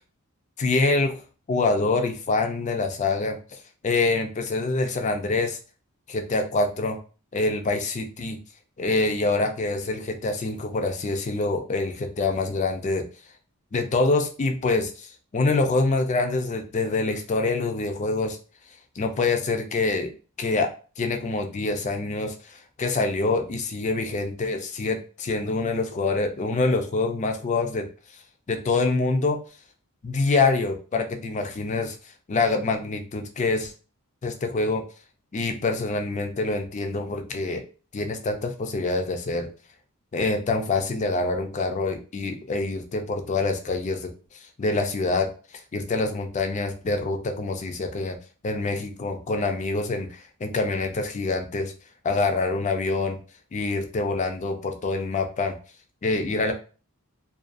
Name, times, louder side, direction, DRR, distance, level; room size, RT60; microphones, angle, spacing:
voice 1, 0.6-1.2 1.5-3.6 3.8-5.6 6.1-7.0 7.3-8.4 8.8-13.0 13.7-18.4 19.0-20.1 20.4-20.7 21.0-27.9 28.5-29.4 30.0-32.0 32.3-33.7 34.2-34.8 35.3-37.6 37.9-39.5 40.1-45.3 45.7-48.2 48.4-51.7 52.0-53.2 53.5-55.6 56.0-56.5, left 3 dB, 30° left, 5 dB, 0.4 m, -25 dB
2.5 x 2.3 x 2.4 m, 0.36 s
head